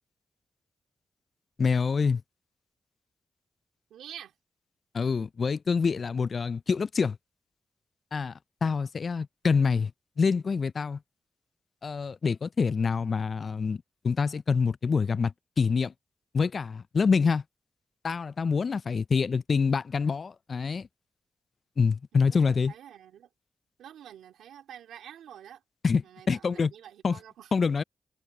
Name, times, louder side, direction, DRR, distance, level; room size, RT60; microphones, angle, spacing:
voice 1, 1.6-2.2 4.9-7.2 8.1-8.3 8.6-9.9 10.2-11.0 11.8-15.9 16.3-17.4 18.0-20.9 21.8-22.7 25.8-26.7 27.0-27.2 27.5-27.8, left 5 dB, 60° left, 0.3 m, -26 dB
voice 2, 3.9-4.3 22.1-23.3 23.8-25.6 26.0-27.5, right 10 dB, 90° right, 2.2 m, -48 dB
supercardioid pair, 40°, 0 cm